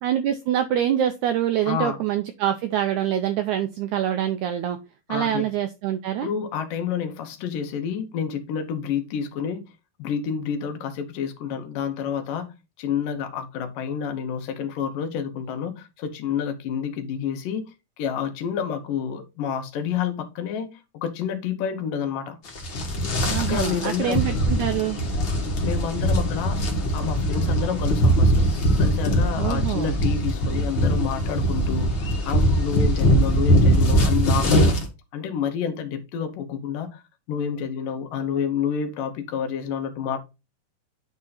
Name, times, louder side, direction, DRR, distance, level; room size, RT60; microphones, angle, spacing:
voice 1, 0.0-4.8 5.1-6.3 23.3-25.0 29.4-30.0, right 10 dB, 80° right, 1.7 m, -25 dB
voice 2, 1.7-2.0 5.1-5.5 6.2-9.7 10.0-22.4 23.4-24.2 25.6-26.7 26.9-28.5 28.8-31.9 32.2-34.8 35.1-37.0 37.3-40.2, left 8 dB, 75° left, 2.7 m, -29 dB
sound 1, 22.5-34.8, equal, 45° left, 2.0 m, -21 dB
9.7 x 3.7 x 4.2 m
omnidirectional pair, 4.1 m